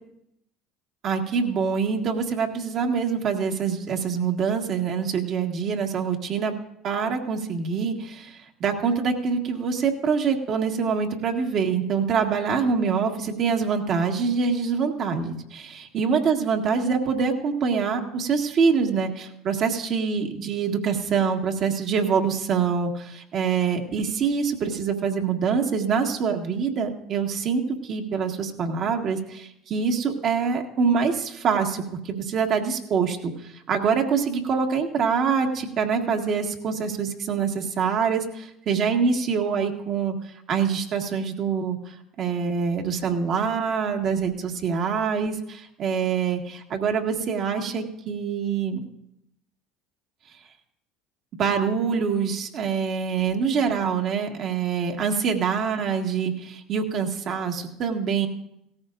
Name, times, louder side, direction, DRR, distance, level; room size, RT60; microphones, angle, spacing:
voice 1, 1.0-6.5 6.8-33.3 33.7-40.1 40.5-41.8 42.2-48.8 51.4-58.3, right 6 dB, 50° right, 3 dB, 1.7 m, -25 dB
17.5 x 14.0 x 2.6 m, 0.79 s
hypercardioid pair, 70°, 0 cm